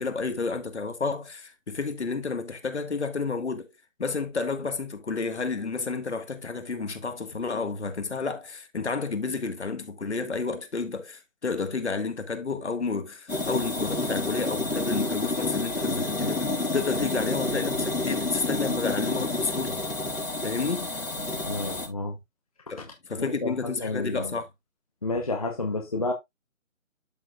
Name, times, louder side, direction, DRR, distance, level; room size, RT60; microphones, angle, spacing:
voice 1, 0.0-3.7 4.0-19.8 20.4-20.9 22.7-24.5, left 4 dB, 55° left, 1.6 m, -31 dB
sound 1, 13.3-21.9, left 2 dB, 90° left, 4.0 m, -29 dB
voice 2, 21.4-22.2 23.2-23.5 23.8-24.3 25.0-26.1, left 2 dB, 25° left, 0.8 m, -30 dB
12.5 x 4.4 x 2.4 m
figure-of-eight pair, 160°, 40 cm